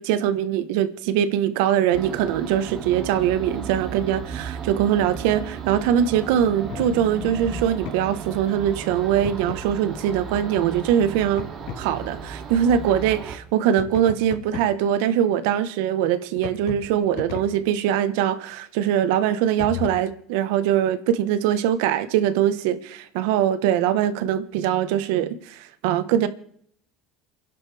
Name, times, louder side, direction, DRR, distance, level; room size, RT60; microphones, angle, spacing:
voice 1, 0.0-11.4 11.8-26.3, right 10 dB, 75° right, 1.3 m, -22 dB
sound 1, 1.9-13.4, right 6 dB, 45° right, 2.8 m, -35 dB
sound 2, 6.2-8.1 9.2-9.7 11.4-11.9 13.8-14.9 16.4-17.7 19.6-19.9, left 8 dB, 75° left, 3.6 m, -36 dB
29.0 x 11.5 x 3.5 m
supercardioid pair, 100°, 0 cm